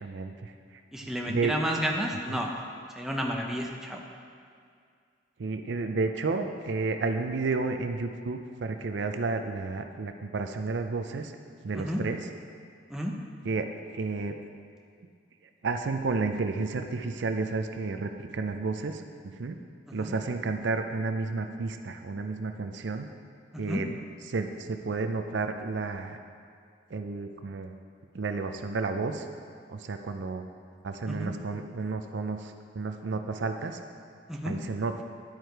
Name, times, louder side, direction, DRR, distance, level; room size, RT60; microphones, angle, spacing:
voice 1, 0.0-0.5 1.3-1.5 2.3-2.4 5.4-11.3 11.6-12.2 13.4-13.7 13.9-14.4 15.6-19.0 19.4-19.6 19.9-23.1 23.6-24.0 24.3-26.2 26.9-27.7 28.1-29.2 29.7-30.5 30.8-33.8 34.4-35.0, right 3 dB, 70° right, 7 dB, 0.5 m, -31 dB
voice 2, 0.9-2.5 3.0-4.0 11.7-12.0 12.9-13.1 19.9-20.1 23.5-23.8 31.1-31.3 34.3-34.6, equal, ahead, 0 dB, 0.5 m, -31 dB
10.5 x 4.8 x 4.6 m, 2.2 s
head